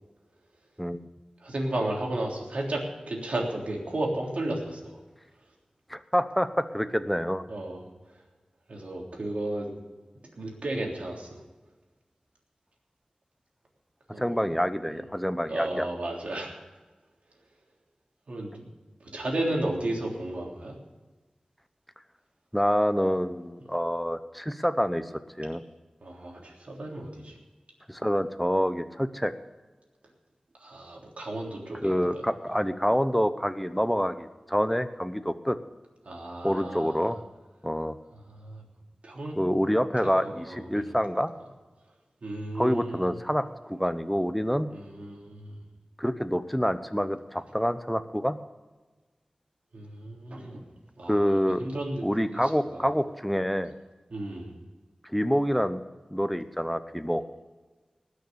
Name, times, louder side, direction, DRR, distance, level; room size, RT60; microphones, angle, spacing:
voice 1, 1.4-4.8 7.5-7.8 8.7-9.8 10.4-11.4 14.1-14.3 14.9-15.0 15.5-16.5 18.3-18.6 19.1-20.8 26.0-27.4 30.6-32.2 36.0-37.1 38.3-38.6 39.0-39.3 40.0-40.9 42.2-43.2 44.7-45.5 49.7-50.6 51.0-52.0 52.3-52.9 54.1-54.5, right 1 dB, 75° right, -1 dB, 3.4 m, -33 dB
voice 2, 5.9-7.5 14.2-15.9 22.5-25.1 25.4-25.6 27.9-29.3 31.8-35.6 36.4-37.2 37.6-38.0 39.4-41.3 42.5-44.7 46.0-48.4 51.1-51.7 52.0-53.7 55.1-55.8 56.1-57.2, equal, 5° left, 11 dB, 0.9 m, -27 dB
19.5 x 6.6 x 6.9 m, 1.3 s
wide cardioid pair, 70°, 2 cm